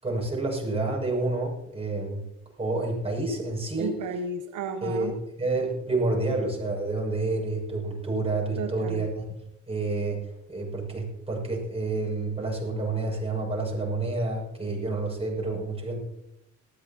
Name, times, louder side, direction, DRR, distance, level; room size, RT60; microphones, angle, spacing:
voice 1, 0.0-2.2 2.6-3.9 4.8-5.1 5.4-9.3 9.7-10.2 10.5-16.0, right 2 dB, 20° right, -2 dB, 7.0 m, -29 dB
voice 2, 3.8-5.2 8.6-9.1, right 4 dB, 75° right, 6 dB, 1.0 m, -33 dB
19.0 x 14.5 x 3.0 m, 0.85 s
cardioid pair, 90°, 30 cm